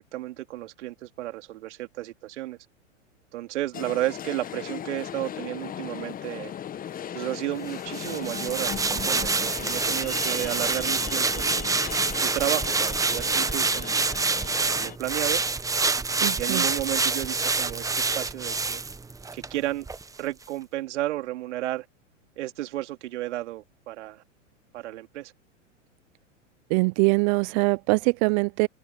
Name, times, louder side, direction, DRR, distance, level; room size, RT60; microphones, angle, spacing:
voice 1, 0.0-2.6 3.3-6.5 7.1-11.7 12.2-14.0 14.7-15.4 16.4-18.8 19.3-19.9 20.2-21.9 22.4-24.2 24.7-25.3, right 15 dB, 65° right, 3.1 m, -32 dB
sound 1, 3.7-15.0, left 9 dB, 20° left, 1.3 m, -37 dB
sound 2, 7.9-19.5 19.9-20.0, right 4 dB, 10° right, 1.2 m, -26 dB
voice 2, 16.2-16.7 26.7-28.7, right 31 dB, 35° right, 0.4 m, -23 dB
hypercardioid pair, 105°, 38 cm